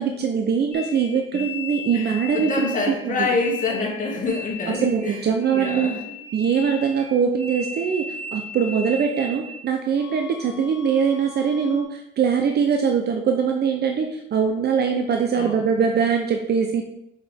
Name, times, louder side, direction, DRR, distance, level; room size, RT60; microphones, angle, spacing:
voice 1, 0.0-2.7 3.0-3.3 4.8-5.9 6.3-8.1 8.3-16.8, right 6 dB, 55° right, 3 dB, 0.7 m, -22 dB
sound 1, 0.7-9.6 9.9-11.8, left 4 dB, 60° left, 1.6 m, -37 dB
voice 2, 1.9-5.2 5.5-6.1 15.3-15.7, left 3 dB, 40° left, -2 dB, 2.2 m, -27 dB
6.4 x 5.0 x 3.5 m, 0.81 s
cardioid pair, 90°, 20 cm